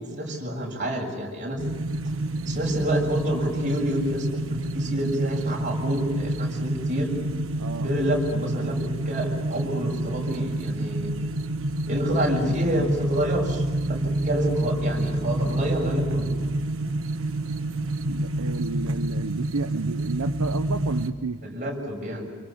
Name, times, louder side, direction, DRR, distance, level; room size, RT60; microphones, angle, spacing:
voice 1, 0.0-1.6 2.5-7.1 7.8-11.1 11.9-16.3 21.4-22.3, equal, 35° right, -1 dB, 7.1 m, -28 dB
sound 1, 1.6-21.1, right 1 dB, 65° right, 1.4 m, -28 dB
voice 2, 18.1-21.4, right 3 dB, 85° right, 9 dB, 0.8 m, -31 dB
28.0 x 24.0 x 7.2 m, 1.5 s
head